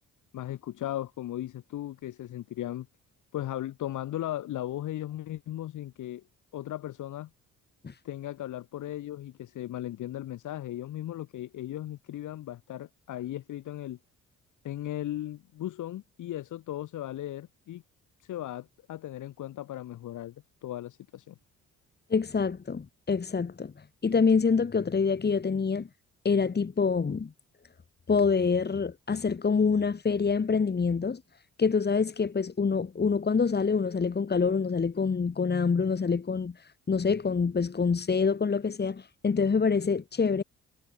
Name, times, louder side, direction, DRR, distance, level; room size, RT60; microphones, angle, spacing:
voice 1, 0.3-2.9 3.3-6.2 6.5-7.3 8.0-14.0 14.6-17.8 18.2-20.3 20.6-21.3, left 13 dB, 80° left, 7.8 m, -37 dB
voice 2, 22.1-23.7 24.0-25.9 26.3-27.3 28.1-31.2 31.6-36.6 36.9-40.4, left 5 dB, 35° left, 3.4 m, -26 dB
cardioid pair, 90°, 30 cm